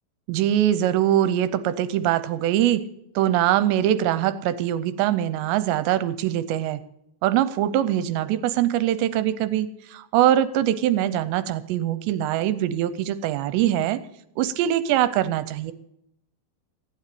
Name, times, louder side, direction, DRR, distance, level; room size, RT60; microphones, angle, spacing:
voice 1, 0.3-2.8 3.2-6.8 7.2-14.0 14.4-15.7, right 12 dB, 80° right, 13 dB, 2.7 m, -23 dB
15.0 x 9.6 x 8.3 m, 0.79 s
omnidirectional pair, 5.4 m